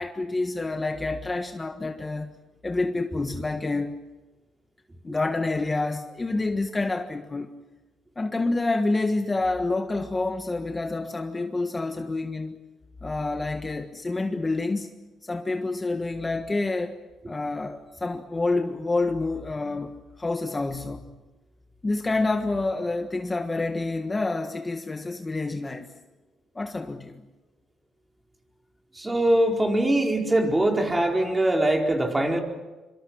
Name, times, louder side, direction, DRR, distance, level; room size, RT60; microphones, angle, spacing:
voice 1, 0.0-2.3 2.6-4.0 5.0-7.5 8.2-12.6 13.0-14.9 15.2-16.9 17.3-21.0 21.8-25.9 26.5-27.2, left 2 dB, 20° left, 6 dB, 1.5 m, -28 dB
voice 2, 29.0-32.4, right 1 dB, 15° right, 2 dB, 4.5 m, -22 dB
26.0 x 25.0 x 6.3 m, 1.1 s
cardioid pair, 90°, 0 cm